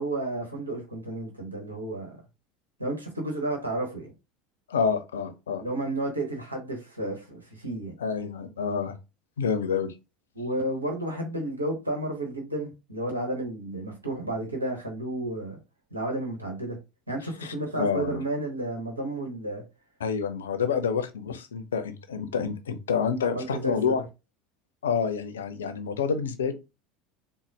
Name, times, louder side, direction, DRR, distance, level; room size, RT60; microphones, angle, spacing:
voice 1, 0.0-2.2 2.8-4.1 5.6-7.9 10.4-15.6 15.9-16.8 17.1-19.6 23.3-23.8, right 1 dB, 85° right, 1.0 m, -32 dB
voice 2, 4.7-5.6 8.0-9.0 9.4-9.9 17.4-18.2 20.0-24.0 24.8-26.5, left 6 dB, 70° left, 0.5 m, -28 dB
3.9 x 2.0 x 3.3 m
figure-of-eight pair, 75°, 0 cm